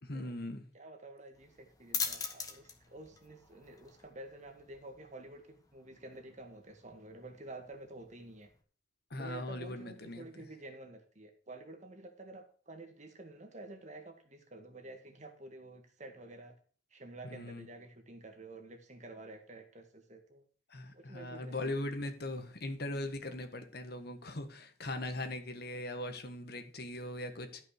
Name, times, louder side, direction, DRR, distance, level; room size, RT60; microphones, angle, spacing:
voice 1, 0.0-0.6 9.1-10.3 17.3-17.6 20.7-27.6, left 1 dB, 55° left, 1.6 m, -40 dB
voice 2, 0.7-8.5 9.2-16.5 16.9-20.5 20.9-22.1, right 2 dB, 40° right, 1.9 m, -50 dB
sound 1, 1.3-8.6, left 5 dB, 20° left, 1.4 m, -44 dB
12.5 x 5.9 x 6.6 m
head